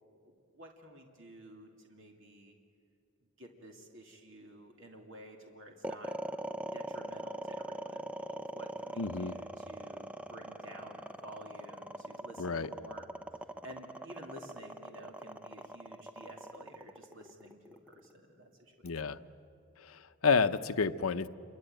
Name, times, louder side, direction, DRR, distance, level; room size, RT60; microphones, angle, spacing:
voice 1, 0.1-2.5 3.4-6.1 6.7-13.1 13.6-19.2, right 1 dB, 60° right, 2 dB, 2.6 m, -52 dB
sound 1, 5.8-18.1, right 1 dB, 5° right, 0.6 m, -41 dB
voice 2, 9.0-9.3 12.4-12.7 18.8-19.2 19.8-21.3, left 5 dB, 85° left, 11 dB, 0.8 m, -30 dB
28.0 x 23.5 x 9.0 m, 2.4 s
head